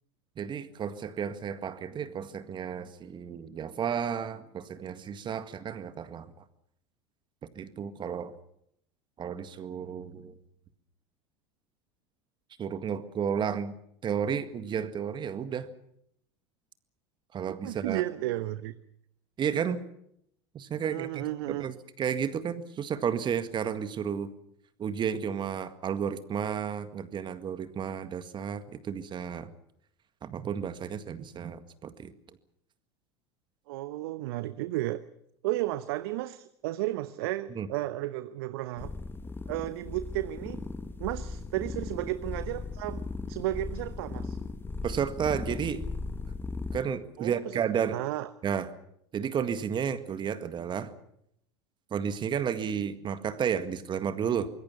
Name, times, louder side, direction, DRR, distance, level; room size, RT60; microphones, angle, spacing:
voice 1, 0.4-6.4 7.6-8.3 9.2-10.4 12.6-13.7 14.0-15.7 17.3-18.0 19.4-19.8 20.5-24.3 24.8-29.5 30.2-32.1 37.6-37.7 44.8-45.8 46.7-48.0 48.4-48.7 49.1-50.9 51.9-54.5, right 7 dB, 35° right, 12 dB, 1.9 m, -32 dB
voice 2, 17.5-18.8 20.8-21.7 33.7-35.0 35.4-38.9 39.5-40.6 41.0-44.4 47.2-47.6 47.9-48.3, right 16 dB, 60° right, 14 dB, 0.9 m, -33 dB
sound 1, 38.8-46.8, left 3 dB, 15° left, 1.6 m, -37 dB
25.5 x 21.0 x 7.1 m, 0.73 s
figure-of-eight pair, 75°, 14 cm